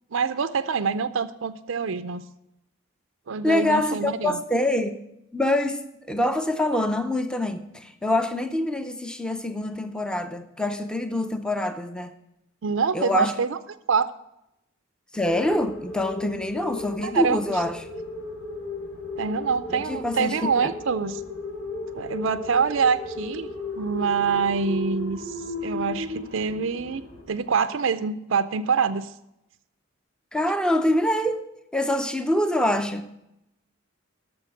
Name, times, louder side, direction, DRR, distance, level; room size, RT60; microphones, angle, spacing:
voice 1, 0.1-2.2 3.3-4.4 12.6-13.6 13.9-14.1 17.0-17.6 19.2-21.2 22.0-23.5 23.8-29.1, right 5 dB, 65° right, 11 dB, 0.5 m, -25 dB
voice 2, 3.4-5.0 5.3-5.8 6.1-12.1 12.9-13.3 15.1-17.8 19.7-20.4 20.6-20.7 30.3-31.5 31.7-33.1, left 1 dB, 5° left, 8 dB, 0.6 m, -25 dB
sound 1, 15.2-27.2, left 2 dB, 90° left, 4.8 m, -35 dB
11.5 x 7.0 x 7.7 m, 0.85 s
head